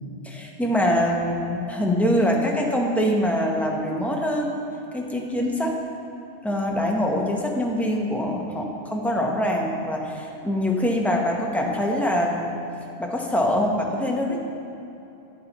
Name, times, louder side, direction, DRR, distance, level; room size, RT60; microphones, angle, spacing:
voice 1, 0.2-4.5 4.9-5.8 6.4-12.6 13.0-14.4, equal, ahead, -1 dB, 0.7 m, -24 dB
11.0 x 9.3 x 3.0 m, 2.9 s
omnidirectional pair, 1.3 m